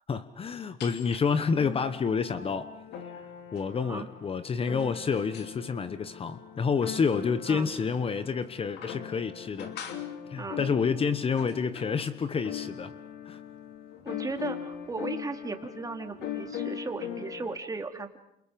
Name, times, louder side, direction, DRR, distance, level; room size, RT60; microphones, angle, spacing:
voice 1, 0.1-2.7 3.5-9.7 10.3-12.9 13.3-13.4, left 5 dB, 35° left, 1.1 m, -29 dB
sound 1, 0.8-1.2 1.6-17.6, left 9 dB, 80° left, 2.9 m, -40 dB
voice 2, 14.0-18.2, right 3 dB, 20° right, 2.8 m, -36 dB
30.0 x 28.0 x 5.3 m
cardioid pair, 110°, 17 cm